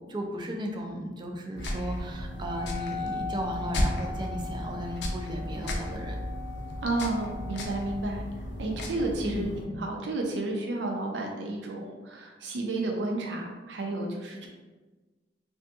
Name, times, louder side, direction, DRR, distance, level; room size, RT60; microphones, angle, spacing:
voice 1, 0.1-6.2 9.2-9.8, equal, 25° right, 2 dB, 0.3 m, -35 dB
sound 1, 1.6-9.6, left 1 dB, 70° left, 0.4 m, -34 dB
Wind instrument woodwind instrument, 2.3-8.1, left 5 dB, 40° left, 0.8 m, -40 dB
voice 2, 6.8-8.2 8.6-9.5 9.8-14.5, right 2 dB, 85° right, 1 dB, 0.5 m, -31 dB
2.6 x 2.6 x 2.3 m, 1.2 s
head